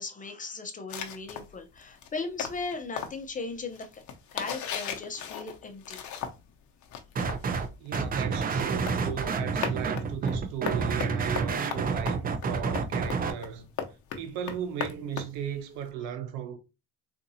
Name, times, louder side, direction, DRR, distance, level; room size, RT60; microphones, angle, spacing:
voice 1, 0.0-4.0 4.3-6.0, left 3 dB, 20° left, 0.7 m, -37 dB
sound 1, 0.9-6.6 6.8-15.9, left 8 dB, 55° left, 0.8 m, -38 dB
sound 2, 7.2-7.7 7.9-13.3, right 5 dB, 25° right, 0.5 m, -29 dB
voice 2, 7.8-13.7 14.2-16.6, right 8 dB, 85° right, 0.8 m, -36 dB
3.8 x 2.6 x 2.7 m
supercardioid pair, 105°, 35 cm